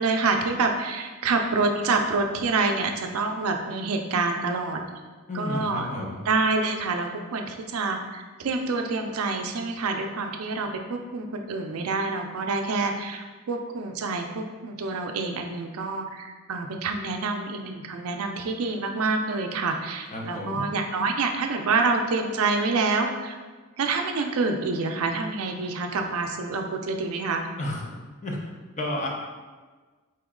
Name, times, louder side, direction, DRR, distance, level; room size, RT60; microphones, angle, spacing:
voice 1, 0.0-4.8 5.3-5.9 6.2-23.4 23.8-27.4, right 3 dB, 70° right, 4 dB, 0.4 m, -27 dB
voice 2, 5.3-6.2 20.1-20.7 27.6-27.8 28.2-28.4 28.8-29.1, left 1 dB, 35° left, -2 dB, 0.7 m, -31 dB
4.3 x 3.0 x 3.6 m, 1.4 s
head